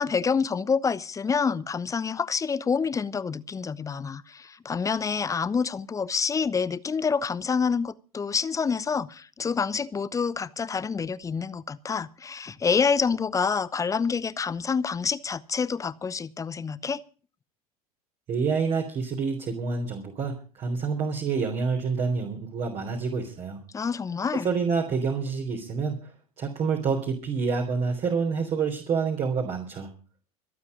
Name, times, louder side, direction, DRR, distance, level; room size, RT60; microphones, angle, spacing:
voice 1, 0.0-17.0 23.7-24.5, left 5 dB, 15° left, 0.8 m, -27 dB
voice 2, 18.3-23.6 24.3-26.1 26.4-29.9, right 5 dB, 35° right, 3.4 m, -28 dB
25.5 x 8.7 x 5.0 m
figure-of-eight pair, 80°, 19 cm